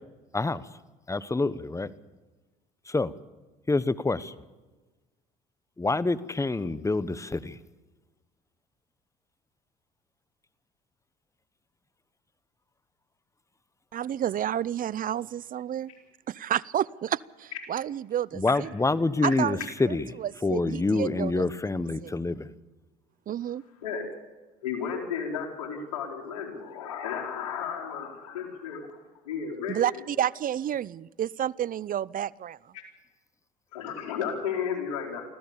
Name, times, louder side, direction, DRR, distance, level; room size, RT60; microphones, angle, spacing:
voice 1, 0.3-0.7 1.1-1.9 2.9-3.1 3.7-4.3 5.8-7.6 18.3-20.1 20.4-22.5, left 3 dB, 15° left, 16 dB, 1.1 m, -27 dB
voice 2, 13.9-15.9 16.3-18.7 19.2-19.6 19.9-21.5 22.0-22.1 23.3-23.6 29.7-32.6, right 10 dB, 45° right, 23 dB, 0.6 m, -30 dB
voice 3, 24.6-29.0 29.3-30.0 32.7-32.8 33.7-35.2, left 7 dB, 90° left, 0 dB, 4.4 m, -33 dB
25.0 x 15.5 x 7.1 m, 1.2 s
supercardioid pair, 75°, 20 cm